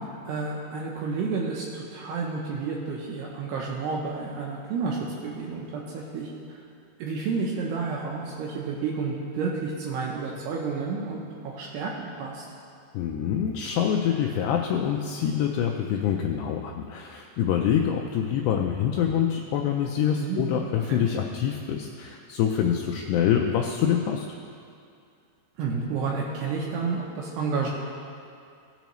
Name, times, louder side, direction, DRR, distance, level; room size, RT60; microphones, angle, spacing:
voice 1, 0.3-6.6 7.0-12.4 20.2-21.1 25.6-27.7, right 4 dB, 75° right, -3 dB, 2.7 m, -31 dB
voice 2, 12.9-24.3, left 9 dB, 85° left, 1 dB, 2.5 m, -25 dB
16.0 x 6.9 x 3.0 m, 2.4 s
omnidirectional pair, 5.1 m